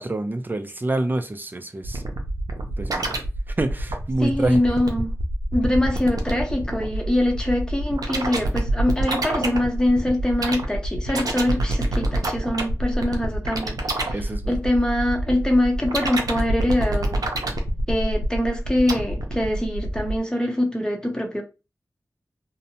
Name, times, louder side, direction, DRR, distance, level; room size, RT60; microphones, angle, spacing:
voice 1, 0.0-2.0 2.8-3.1 3.6-4.6 14.1-14.6, right 2 dB, 30° right, 0.4 m, -26 dB
sound 1, 1.8-20.2, right 1 dB, 85° right, 0.5 m, -27 dB
voice 2, 4.2-5.1 5.5-17.2 17.9-21.4, left 1 dB, 10° left, 0.7 m, -24 dB
2.7 x 2.1 x 2.7 m
wide cardioid pair, 80°, 6 cm